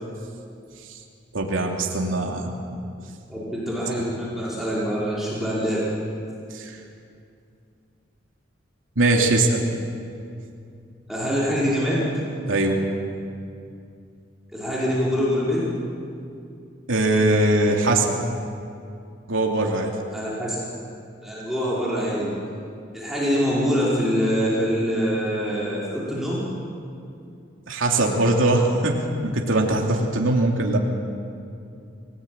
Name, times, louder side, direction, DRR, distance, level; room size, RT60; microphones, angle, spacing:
voice 1, 1.3-2.5 6.5-6.8 9.0-9.6 12.5-12.8 16.9-18.1 19.3-19.9 27.7-30.8, right 2 dB, 90° right, 0 dB, 2.9 m, -21 dB
voice 2, 3.3-5.9 11.1-12.1 14.5-15.6 20.1-20.6 21.2-22.3 22.9-26.4, equal, ahead, -9 dB, 5.3 m, -24 dB
26.5 x 19.0 x 8.9 m, 2.5 s
head